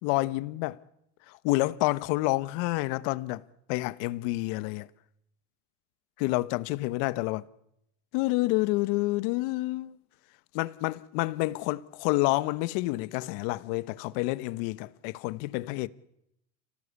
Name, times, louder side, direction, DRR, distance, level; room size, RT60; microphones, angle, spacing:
voice 1, 0.0-0.8 1.3-3.4 3.7-4.9 6.2-7.4 8.1-10.0 10.5-15.9, left 20 dB, 55° left, 1.1 m, -28 dB
29.5 x 18.5 x 8.3 m
supercardioid pair, 125°, 41 cm